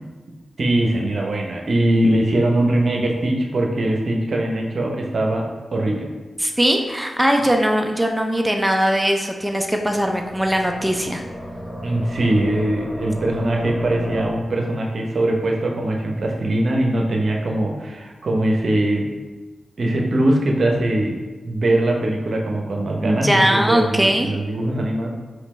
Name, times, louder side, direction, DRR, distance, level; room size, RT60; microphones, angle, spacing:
voice 1, 0.6-6.1 11.8-19.1 19.8-21.2 21.4-25.1, right 1 dB, 60° right, 0 dB, 0.7 m, -21 dB
voice 2, 6.4-11.2 23.0-24.3, equal, 10° right, 3 dB, 0.5 m, -20 dB
sound 1, 9.5-14.4, equal, 15° left, 1.0 m, -34 dB
4.9 x 3.2 x 3.1 m, 1.2 s
cardioid pair, 45°, 0 cm